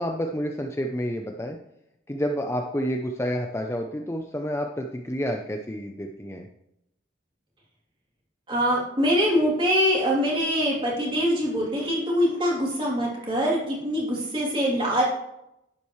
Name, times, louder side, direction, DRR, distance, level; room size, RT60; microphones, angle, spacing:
voice 1, 0.0-1.6 2.1-6.5, equal, 15° left, 3 dB, 0.5 m, -29 dB
voice 2, 8.5-15.0, equal, 25° right, -4 dB, 3.0 m, -24 dB
11.0 x 8.7 x 3.2 m, 0.83 s
head